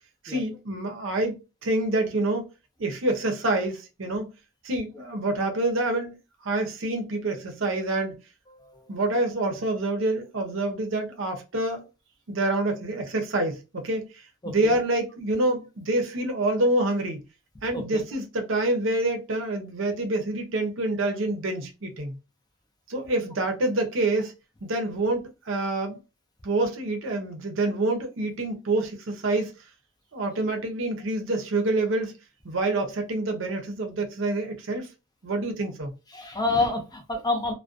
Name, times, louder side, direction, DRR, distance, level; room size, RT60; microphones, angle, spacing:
voice 1, 0.2-1.4 1.6-2.4 2.8-4.3 4.6-6.2 6.4-8.2 8.9-11.9 12.3-17.2 17.6-22.2 22.9-24.3 24.6-26.0 26.4-29.5 30.1-32.1 32.4-34.9 35.2-35.9, right 2 dB, 65° right, 0.6 m, -27 dB
voice 2, 36.1-37.5, left 2 dB, 20° left, 0.4 m, -28 dB
2.4 x 2.1 x 2.4 m
head